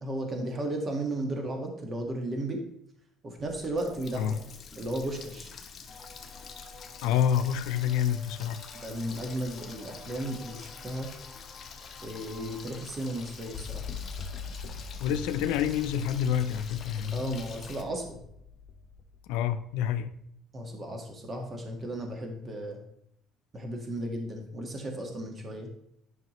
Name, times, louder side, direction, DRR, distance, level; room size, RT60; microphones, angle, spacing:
voice 1, 0.0-2.6 3.2-4.4 4.8-5.5 8.8-11.1 12.0-13.8 17.1-18.2 20.5-22.8 23.5-25.7, right 1 dB, 25° right, 1.6 m, -34 dB
Water tap faucet, 3.4-17.8, left 6 dB, 35° left, 1.0 m, -46 dB
sound 1, 5.9-13.5, left 1 dB, 10° right, 3.1 m, -53 dB
voice 2, 7.0-8.6 15.0-17.4 19.3-20.1, left 9 dB, 85° left, 0.6 m, -28 dB
sound 2, 13.5-19.5, left 5 dB, 55° left, 1.2 m, -42 dB
11.0 x 5.8 x 3.1 m
cardioid pair, 135°, 0 cm